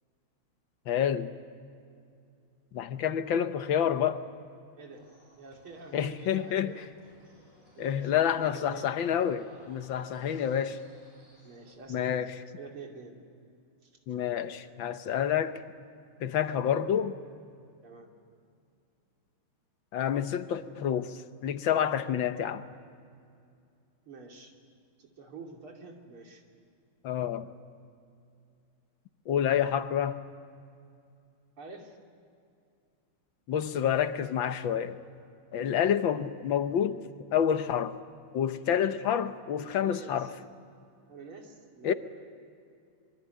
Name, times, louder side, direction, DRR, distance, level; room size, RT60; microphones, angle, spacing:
voice 1, 0.9-1.3 2.7-4.2 5.9-6.9 7.8-10.8 11.9-12.4 14.1-15.6 16.2-17.2 19.9-22.6 27.0-27.5 29.3-30.2 33.5-35.0 35.5-37.0 37.3-38.0 38.3-40.4 41.8-41.9, left 9 dB, 70° left, 1.6 m, -28 dB
sound 1, 4.9-11.7, right 1 dB, 40° right, 8.0 m, -60 dB
voice 2, 5.4-6.8 7.7-8.9 10.0-10.4 11.4-12.2 12.6-13.2 13.8-13.9 17.8-18.1 24.1-24.5 25.0-26.4 31.6-32.0 35.5-35.8 39.8-40.3 41.1-41.9, right 4 dB, 90° right, 3.7 m, -47 dB
25.0 x 23.5 x 9.3 m
omnidirectional pair, 2.3 m